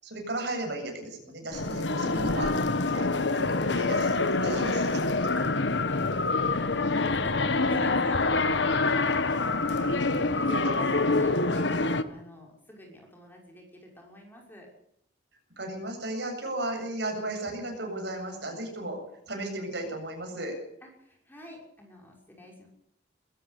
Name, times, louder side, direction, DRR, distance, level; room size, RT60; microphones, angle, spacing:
voice 1, 0.0-2.6 2.9-5.3 10.5-11.0 15.6-19.0 19.3-20.5, right 2 dB, 65° right, 3 dB, 7.8 m, -35 dB
sound 1, 1.5-12.0, left 3 dB, 70° left, 1.4 m, -26 dB
voice 2, 5.4-14.7 20.8-22.7, equal, 10° left, 0 dB, 6.2 m, -48 dB
22.0 x 14.5 x 8.3 m, 0.74 s
head